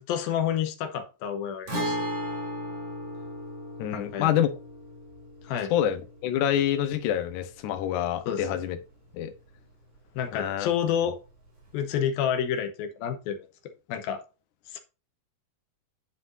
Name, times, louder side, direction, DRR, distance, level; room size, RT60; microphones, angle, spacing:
voice 1, 0.0-2.0 3.9-4.3 5.4-5.7 8.3-8.5 10.2-11.2 11.7-13.4 13.9-14.2 14.7-14.8, left 9 dB, 85° left, 2.8 m, -29 dB
Guitar, 1.7-9.3 9.6-9.7 11.7-11.8, equal, 55° right, 5.5 m, -37 dB
voice 2, 3.8-4.5 5.7-8.8 9.1-9.3 10.3-10.7, left 10 dB, 70° left, 2.3 m, -26 dB
9.7 x 5.9 x 2.6 m
omnidirectional pair, 4.2 m